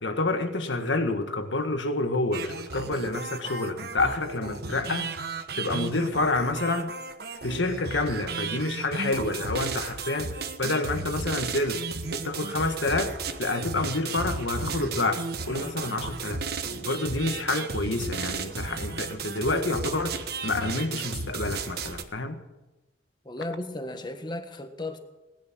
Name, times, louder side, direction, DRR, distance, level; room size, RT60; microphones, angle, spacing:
voice 1, 0.0-5.1 5.6-6.9 7.4-10.3 10.6-11.8 12.1-16.4 16.8-22.4, left 2 dB, 80° left, 1.7 m, -28 dB
sound 1, 2.3-22.0, right 4 dB, 55° right, 1.3 m, -34 dB
voice 2, 23.2-25.0, left 1 dB, 25° left, 1.4 m, -35 dB
19.0 x 11.0 x 6.2 m
head